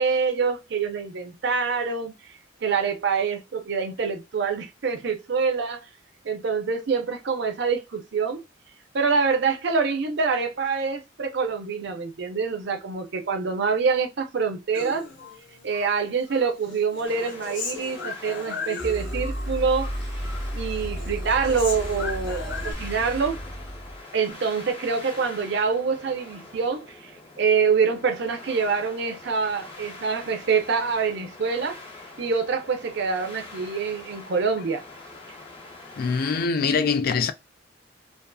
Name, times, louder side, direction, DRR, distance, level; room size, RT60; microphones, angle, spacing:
voice 1, 0.0-2.1 2.6-5.9 6.2-8.4 8.9-15.1 15.6-19.9 20.5-23.4 24.1-27.0 27.4-31.8 32.2-34.8, right 5 dB, 65° right, 0.5 m, -25 dB
Human voice, 14.7-15.9 16.3-19.5 19.7-20.5 20.7-22.7, left 4 dB, 85° left, 1.0 m, -37 dB
sound 1, 17.0-36.5, left 3 dB, 30° left, 0.7 m, -44 dB
sound 2, 18.8-24.0, equal, ahead, 0.7 m, -33 dB
voice 2, 36.0-37.3, left 5 dB, 55° left, 0.3 m, -23 dB
2.6 x 2.4 x 2.2 m
head